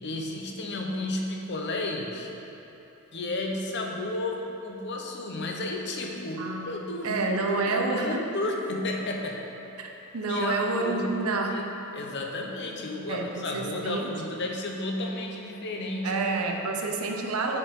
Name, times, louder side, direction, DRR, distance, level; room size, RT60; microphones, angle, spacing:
voice 1, 0.0-2.3 3.1-9.4 10.3-11.7 11.9-16.2 16.7-17.2, left 2 dB, 50° left, 1 dB, 0.7 m, -32 dB
voice 2, 6.4-8.3 9.8-11.7 13.1-14.1 16.0-17.6, right 3 dB, 90° right, 2 dB, 0.7 m, -29 dB
7.2 x 6.4 x 3.6 m, 3.0 s
head